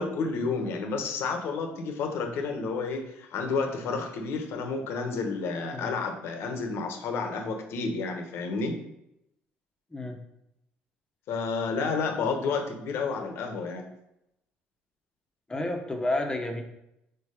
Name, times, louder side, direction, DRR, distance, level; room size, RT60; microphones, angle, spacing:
voice 1, 0.0-8.8 11.3-13.8, left 4 dB, 70° left, 5 dB, 1.1 m, -30 dB
voice 2, 15.5-16.6, left 1 dB, 20° left, 3 dB, 1.1 m, -30 dB
4.6 x 4.5 x 4.9 m, 0.84 s
supercardioid pair, 90°, 4 cm